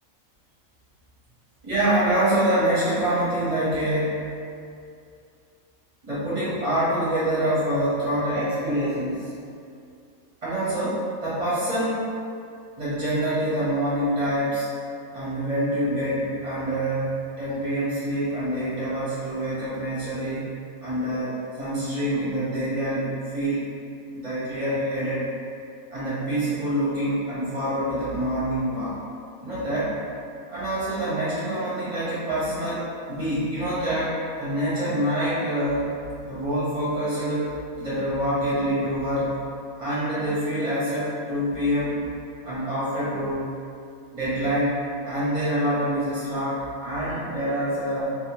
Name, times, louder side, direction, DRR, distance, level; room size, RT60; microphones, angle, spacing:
voice 1, 1.6-4.2 6.0-9.3 10.4-12.0 12.8-14.7 15.1-23.7 24.1-25.2 25.9-29.0 29.4-30.0 30.5-35.9 36.2-37.5 37.8-39.3 39.8-42.0 42.4-43.5 44.1-44.8 45.0-48.2, right 1 dB, 40° right, -11 dB, 0.6 m, -26 dB
2.7 x 2.0 x 2.9 m, 2.4 s
omnidirectional pair, 1.5 m